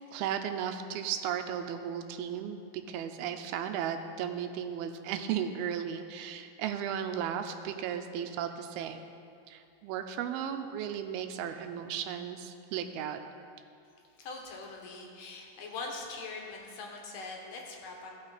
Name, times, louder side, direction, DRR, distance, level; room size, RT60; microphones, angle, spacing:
voice 1, 0.1-9.0 9.5-13.2, right 9 dB, 90° right, 7 dB, 2.5 m, -35 dB
voice 2, 14.2-18.1, left 3 dB, 70° left, 0 dB, 2.4 m, -42 dB
16.0 x 5.9 x 4.0 m, 2.4 s
omnidirectional pair, 4.3 m